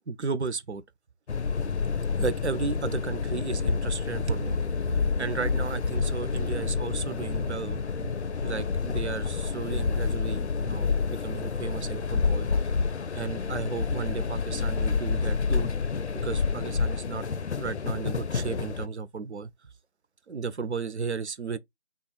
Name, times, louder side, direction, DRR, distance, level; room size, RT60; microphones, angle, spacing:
voice 1, 0.1-0.8 2.2-7.8 8.4-12.5 13.1-15.7 16.2-17.2 17.6-19.5 20.3-21.6, right 5 dB, 85° right, 0.6 m, -34 dB
sound 1, 1.3-18.9, left 5 dB, 90° left, 0.5 m, -29 dB
2.9 x 2.3 x 3.1 m
figure-of-eight pair, 175°, 33 cm